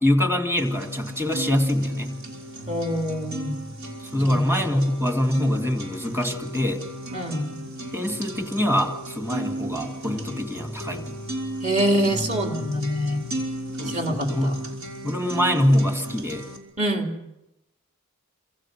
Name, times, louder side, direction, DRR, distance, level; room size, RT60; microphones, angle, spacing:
voice 1, 0.0-2.2 4.0-6.8 7.9-11.2 13.8-14.6 15.0-16.4, left 1 dB, 10° right, 5 dB, 2.2 m, -24 dB
sound 1, 0.6-16.6, right 1 dB, 70° right, 5.4 m, -35 dB
voice 2, 2.7-3.6 4.3-4.5 7.1-7.5 11.6-13.2 13.8-14.5 16.8-17.1, equal, 35° right, 3 dB, 2.8 m, -25 dB
27.5 x 26.5 x 6.2 m, 0.93 s
head